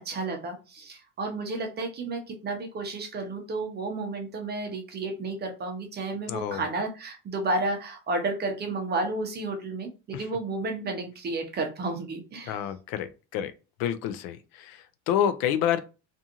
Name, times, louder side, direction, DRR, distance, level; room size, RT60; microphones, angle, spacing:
voice 1, 0.0-12.6, right 2 dB, 25° right, 0.6 m, -32 dB
voice 2, 6.3-6.6 10.1-10.2 12.5-13.5 13.8-15.8, left 9 dB, 70° left, 0.5 m, -28 dB
2.5 x 2.4 x 2.8 m
cardioid pair, 135°, 36 cm